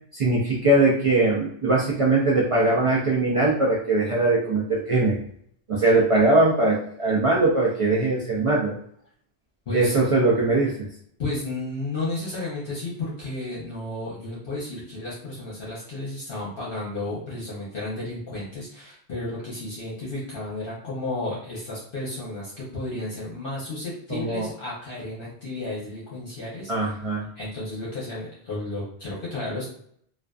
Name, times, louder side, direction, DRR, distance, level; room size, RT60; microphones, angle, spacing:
voice 1, 0.1-5.2 5.7-8.7 9.7-10.9 24.1-24.5 26.7-27.3, right 2 dB, 60° right, -4 dB, 0.3 m, -21 dB
voice 2, 9.7-10.0 11.2-27.0 27.3-29.7, left 2 dB, 60° left, -6 dB, 0.9 m, -33 dB
2.4 x 2.4 x 2.3 m, 0.65 s
omnidirectional pair, 1.1 m